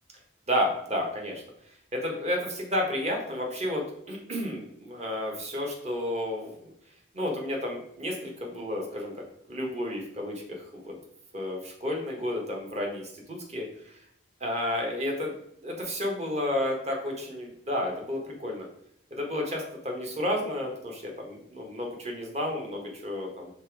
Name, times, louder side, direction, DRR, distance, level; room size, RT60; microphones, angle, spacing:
voice 1, 0.5-1.4 1.9-6.7 7.1-9.1 9.5-10.9 11.3-14.0 14.4-15.3 15.6-18.7 19.1-23.5, left 1 dB, 35° right, 1 dB, 1.4 m, -31 dB
5.9 x 3.5 x 4.8 m, 0.74 s
head